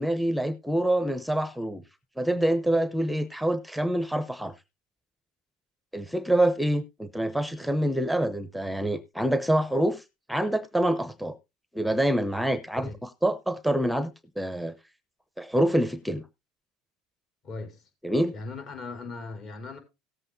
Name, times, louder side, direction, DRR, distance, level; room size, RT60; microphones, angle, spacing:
voice 1, 0.0-1.8 2.2-4.5 5.9-11.4 11.7-12.9 13.2-14.7 15.4-16.2 18.0-18.3, right 1 dB, ahead, 0.7 m, -26 dB
voice 2, 17.4-17.9 18.3-19.8, left 3 dB, 50° left, 4.6 m, -38 dB
17.5 x 7.7 x 2.6 m
supercardioid pair, 110°, 0 cm